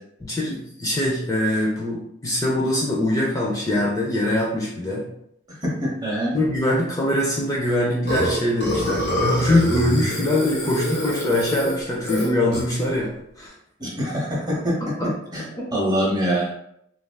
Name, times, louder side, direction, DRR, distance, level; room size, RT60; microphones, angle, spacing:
voice 1, 0.2-5.1 6.3-13.5 14.5-14.6 14.8-15.1 15.5-15.7, left 1 dB, 20° left, -4 dB, 0.4 m, -23 dB
voice 2, 5.6-6.3 13.8-14.8 15.3-16.5, equal, 20° right, -4 dB, 0.8 m, -24 dB
Burping eructation, 8.1-12.8, left 1 dB, 60° left, 1.1 m, -26 dB
3.3 x 2.4 x 2.2 m, 0.75 s
head